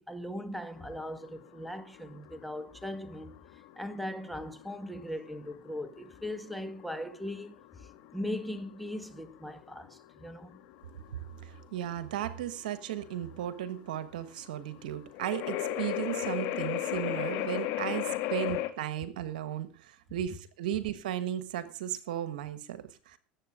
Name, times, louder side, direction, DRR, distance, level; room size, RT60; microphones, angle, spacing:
voice 1, 0.0-3.4 3.8-10.6, left 1 dB, ahead, 1.9 m, -39 dB
sound 1, 0.8-18.7, left 13 dB, 65° left, 2.1 m, -37 dB
voice 2, 11.4-23.2, right 11 dB, 80° right, 1.4 m, -35 dB
19.0 x 8.1 x 5.0 m
hypercardioid pair, 90°, 4 cm